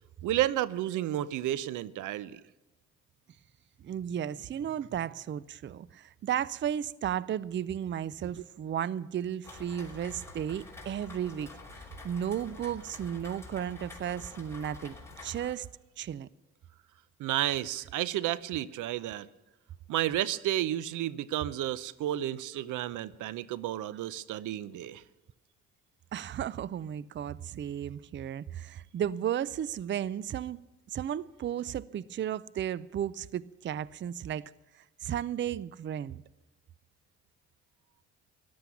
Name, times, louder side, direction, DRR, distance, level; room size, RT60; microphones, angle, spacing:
voice 1, 0.2-2.4 17.2-19.3 19.9-25.0, right 13 dB, 85° right, 0.7 m, -31 dB
voice 2, 3.8-11.5 12.0-15.7 16.0-16.3 26.1-30.6 30.9-34.5 34.8-36.2, right 10 dB, 40° right, 0.5 m, -34 dB
Rain, 9.4-15.5, left 3 dB, 10° left, 3.4 m, -48 dB
14.0 x 11.5 x 7.0 m
cardioid pair, 90°, 30 cm